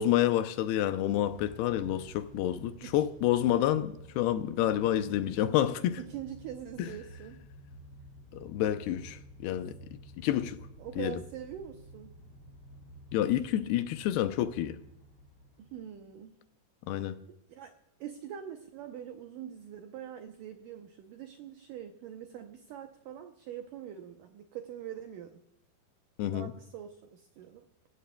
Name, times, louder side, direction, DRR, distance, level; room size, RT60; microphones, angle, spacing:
voice 1, 0.0-6.0 6.8-6.9 8.3-9.8 10.2-10.6 11.0-11.2 13.1-14.8 16.9-17.2 26.2-26.5, left 12 dB, 80° left, 2.5 m, -29 dB
Motor vehicle (road) / Engine starting / Accelerating revving vroom, 1.1-16.1, equal, 35° left, 6.5 m, -51 dB
voice 2, 6.0-7.4 10.8-12.1 15.6-16.4 17.0-17.1 17.5-17.7 18.0-25.4 26.3-27.7, right 9 dB, 85° right, 1.9 m, -43 dB
23.5 x 16.5 x 2.3 m
omnidirectional pair, 4.9 m